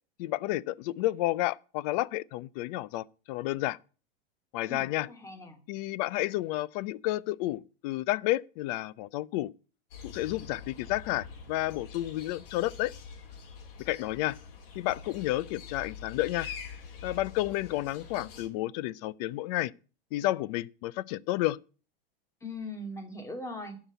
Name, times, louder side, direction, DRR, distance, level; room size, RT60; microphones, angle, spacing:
voice 1, 0.2-3.8 4.5-5.1 5.7-9.5 10.0-12.9 13.9-14.4 14.7-16.5 17.0-19.7 20.1-21.6, left 16 dB, 40° left, 0.6 m, -31 dB
voice 2, 4.7-5.6 22.4-23.8, left 1 dB, 10° left, 2.3 m, -40 dB
sound 1, 9.9-18.5, left 6 dB, 70° left, 3.8 m, -45 dB
12.0 x 6.0 x 9.3 m
supercardioid pair, 150°, 30 cm